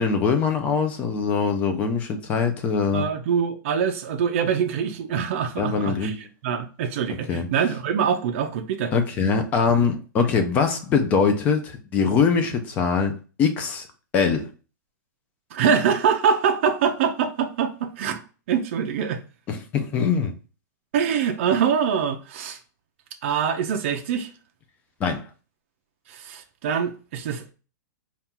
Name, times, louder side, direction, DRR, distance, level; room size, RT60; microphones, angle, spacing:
voice 1, 0.0-3.1 5.6-6.1 7.3-7.5 8.9-13.1 13.4-13.9 14.1-14.5 19.5-20.3 25.0-25.3, left 5 dB, 15° left, 0.4 m, -22 dB
voice 2, 2.9-6.1 6.4-8.9 15.5-19.2 20.9-22.6 23.2-24.3 26.1-27.5, right 7 dB, 40° right, 0.5 m, -24 dB
4.2 x 2.4 x 3.6 m
supercardioid pair, 175°, 10 cm